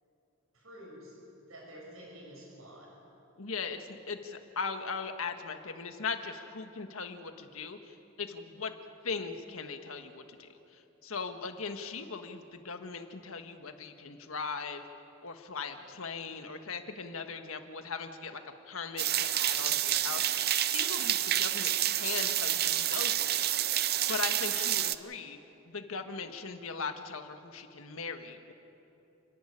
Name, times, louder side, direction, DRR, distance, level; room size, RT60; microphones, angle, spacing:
voice 1, 0.5-1.1 1.4-3.0, equal, 80° right, -2 dB, 7.0 m, -49 dB
voice 2, 3.4-8.7 9.0-14.8 15.2-18.4 18.7-23.5 24.1-25.4 25.7-28.5, left 5 dB, 85° left, 7 dB, 1.5 m, -39 dB
sound 1, 19.0-25.0, right 12 dB, 50° right, 0.6 m, -29 dB
30.0 x 11.0 x 10.0 m, 3.0 s
head